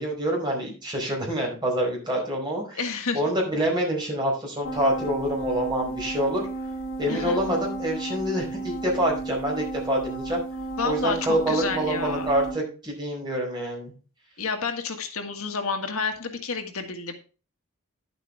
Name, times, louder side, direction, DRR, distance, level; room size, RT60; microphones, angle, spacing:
voice 1, 0.0-2.8 3.1-6.4 7.0-10.4 10.8-13.9, right 1 dB, 20° right, -2 dB, 4.7 m, -26 dB
voice 2, 2.8-3.2 7.1-7.4 10.8-12.3 14.4-17.1, left 4 dB, 75° left, 5 dB, 1.7 m, -30 dB
sound 1, 4.6-12.5, right 2 dB, 60° left, 3.7 m, -33 dB
10.5 x 8.1 x 3.3 m, 0.34 s
head